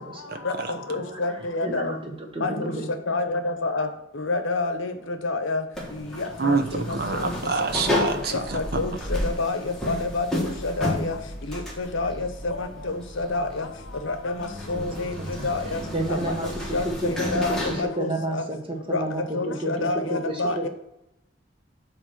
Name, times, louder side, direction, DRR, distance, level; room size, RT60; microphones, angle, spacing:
voice 1, 0.3-0.7 6.4-8.6, right 4 dB, 50° right, 6 dB, 0.8 m, -27 dB
voice 2, 0.9-2.0 2.4-2.7 3.1-3.9 4.1-5.6 5.9-7.3 8.3-11.1 11.5-13.7 14.0-15.2 15.4-15.8 16.1-18.4 18.9-19.0 19.3-20.7, left 3 dB, 80° left, 8 dB, 0.9 m, -28 dB
voice 3, 1.6-2.0 2.3-2.8 14.7-14.8 15.4-15.5 15.9-16.5 16.8-20.7, right 1 dB, 25° right, 2 dB, 1.2 m, -30 dB
sound 1, 5.7-17.8, left 1 dB, 5° left, 1.3 m, -32 dB
8.4 x 3.3 x 6.3 m, 0.80 s
head